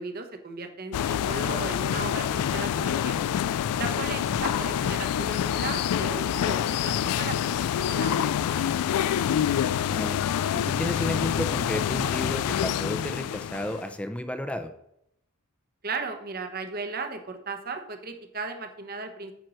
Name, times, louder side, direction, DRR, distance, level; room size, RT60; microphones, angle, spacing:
voice 1, 0.0-3.2 3.8-8.7 15.8-19.3, right 3 dB, 45° right, 6 dB, 1.1 m, -36 dB
sound 1, 0.9-13.9, left 9 dB, 90° left, 0.3 m, -27 dB
voice 2, 9.9-10.2 10.5-14.7, left 1 dB, 5° left, 8 dB, 0.7 m, -32 dB
9.0 x 4.7 x 6.3 m, 0.76 s
head